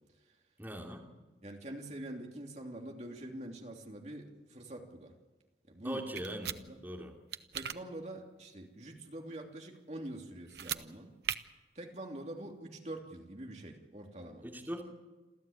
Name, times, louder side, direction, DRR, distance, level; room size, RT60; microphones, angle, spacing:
voice 1, 0.6-1.1 5.8-7.1 14.4-14.9, equal, 10° right, 0 dB, 3.0 m, -41 dB
voice 2, 1.4-5.1 5.7-6.0 6.5-6.8 7.5-11.1 11.7-14.5, right 1 dB, 40° right, 1 dB, 3.0 m, -45 dB
sound 1, 6.2-6.6 7.3-7.8 10.5-10.8 11.2-11.4, right 9 dB, 70° right, 1.0 m, -37 dB
28.0 x 14.0 x 8.8 m, 1.2 s
head